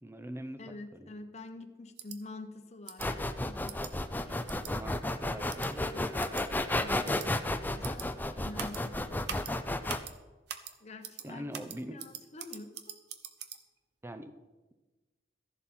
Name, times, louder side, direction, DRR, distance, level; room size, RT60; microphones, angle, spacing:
voice 1, 0.0-1.2 4.7-6.2 11.2-12.0 14.0-14.3, right 1 dB, 15° right, 9 dB, 0.8 m, -43 dB
voice 2, 0.6-3.7 4.3-4.4 5.8-6.1 6.8-9.4 10.8-11.4 11.9-13.0, left 2 dB, 40° left, 6 dB, 1.0 m, -47 dB
sound 1, 2.0-2.2 2.9-3.1 3.7-3.9 4.5-4.7 5.5-5.7 6.2-6.4 7.0-7.3 7.8-8.1 8.6-8.8 9.3-9.5 9.9-10.1 10.5-10.7 11.0-11.3 11.5-13.6, right 8 dB, 65° right, 0.9 m, -42 dB
sound 2, 3.0-10.0, left 1 dB, 10° left, 0.5 m, -32 dB
14.5 x 11.0 x 4.4 m, 1.2 s
head